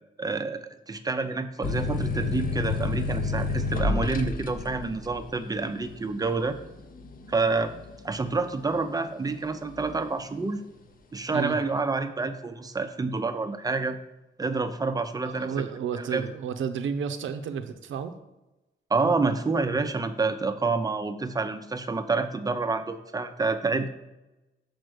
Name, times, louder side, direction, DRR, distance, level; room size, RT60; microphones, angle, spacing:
voice 1, 0.2-6.6 7.3-7.7 8.0-10.6 11.1-14.0 14.4-15.6 16.1-16.3 18.9-23.9, right 3 dB, 20° right, 9 dB, 0.5 m, -28 dB
sound 1, 1.6-8.9 9.3-10.1, left 3 dB, 45° left, 0.6 m, -30 dB
voice 2, 15.2-18.1, right 7 dB, 85° right, 9 dB, 0.6 m, -32 dB
6.6 x 4.3 x 6.3 m, 1.0 s
wide cardioid pair, 130°, 20 cm